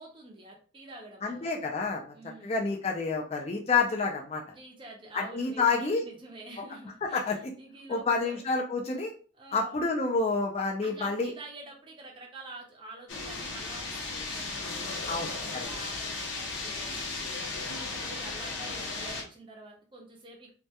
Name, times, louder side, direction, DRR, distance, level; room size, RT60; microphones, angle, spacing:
voice 1, 0.0-1.5 2.1-2.6 4.5-7.2 7.6-8.4 9.4-9.8 10.8-20.5, right 2 dB, 25° right, 0 dB, 0.5 m, -47 dB
voice 2, 1.2-2.0 2.4-4.4 5.1-6.0 7.0-7.5 7.9-9.1 9.5-11.3 15.1-15.7, left 4 dB, 30° left, 1 dB, 0.3 m, -29 dB
sound 1, 13.1-19.2, left 3 dB, 75° left, 0.6 m, -35 dB
2.2 x 2.2 x 2.7 m, 0.40 s
head